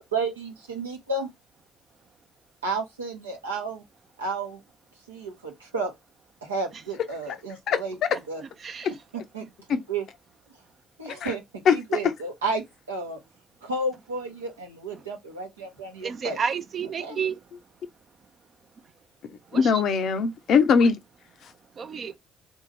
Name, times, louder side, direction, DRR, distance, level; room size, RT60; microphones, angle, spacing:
voice 1, 0.1-1.3 2.6-3.8 4.2-4.6 5.1-5.9 6.4-8.4 9.3-10.1 11.0-13.2 13.6-16.4 17.0-17.2, right 3 dB, 85° right, 0.9 m, -32 dB
voice 2, 16.0-17.4 19.5-19.8 21.8-22.2, right 6 dB, 45° right, 0.5 m, -30 dB
voice 3, 19.5-21.0, left 6 dB, 55° left, 0.5 m, -21 dB
3.6 x 2.6 x 3.2 m
figure-of-eight pair, 50°, 0 cm